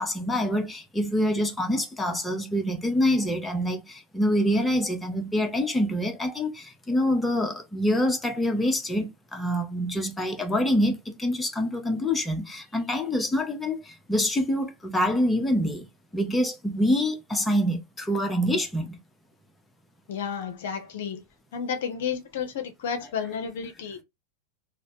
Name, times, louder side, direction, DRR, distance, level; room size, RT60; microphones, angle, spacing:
voice 1, 0.0-15.9 16.1-19.0, equal, 10° left, 0.7 m, -26 dB
voice 2, 20.1-21.2 21.5-24.0, left 7 dB, 55° left, 0.6 m, -32 dB
3.0 x 2.1 x 2.7 m
figure-of-eight pair, 90°, 0 cm